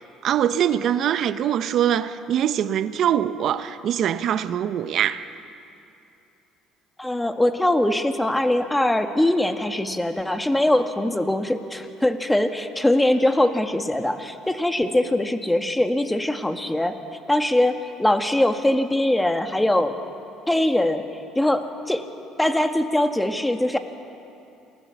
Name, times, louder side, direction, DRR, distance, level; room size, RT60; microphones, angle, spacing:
voice 1, 0.2-5.2, right 10 dB, 60° right, 0.9 m, -23 dB
voice 2, 7.0-17.0 17.3-20.0 20.5-21.0 21.4-22.0 22.4-23.8, left 1 dB, 10° left, 2.0 m, -22 dB
28.5 x 19.0 x 7.3 m
supercardioid pair, 70°, 0 cm